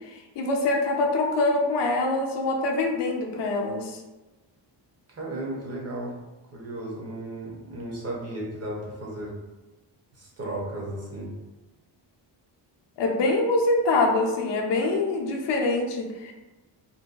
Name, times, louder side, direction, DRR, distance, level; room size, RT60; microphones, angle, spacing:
voice 1, 0.1-4.0 13.0-16.3, left 2 dB, 65° left, 1 dB, 0.5 m, -24 dB
voice 2, 5.1-6.1 6.5-9.3 10.2-11.3, right 1 dB, 35° right, -4 dB, 0.6 m, -34 dB
2.6 x 2.2 x 2.3 m, 1.1 s
wide cardioid pair, 135°, 45 cm